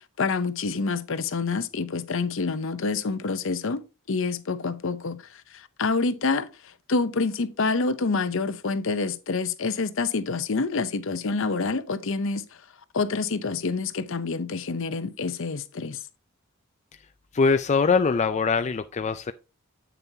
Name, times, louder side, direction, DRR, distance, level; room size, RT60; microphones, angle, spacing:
voice 1, 0.0-3.8 4.1-6.5 6.9-12.4 12.9-16.0, left 4 dB, 60° left, 0.7 m, -27 dB
voice 2, 17.3-19.3, left 5 dB, 30° left, 0.4 m, -22 dB
8.7 x 6.8 x 2.8 m
head